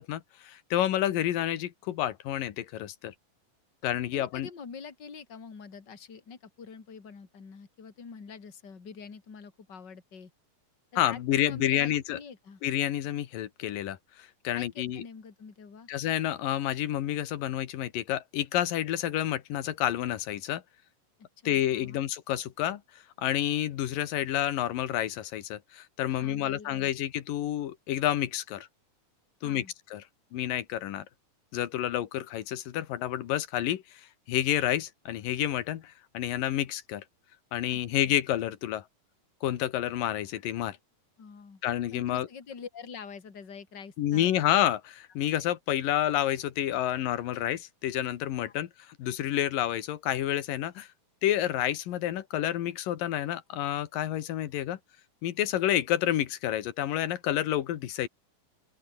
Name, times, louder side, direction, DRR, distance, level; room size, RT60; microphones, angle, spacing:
voice 1, 0.0-3.1 3.8-4.5 11.0-12.2 12.6-15.0 15.9-20.6 21.4-22.8 23.2-28.7 29.4-29.6 29.9-30.0 30.3-31.1 31.5-34.0 34.3-37.0 37.5-38.8 39.4-40.8 41.6-42.3 44.0-50.9 51.2-54.8 55.2-58.1, left 12 dB, 90° left, 3.1 m, -29 dB
voice 2, 4.1-10.3 10.9-12.6 14.5-15.9 21.2-22.0 26.2-26.9 29.4-29.7 37.7-38.2 41.2-41.6 41.9-44.3 48.4-48.5, left 5 dB, 30° left, 3.5 m, -46 dB
open air
omnidirectional pair, 3.9 m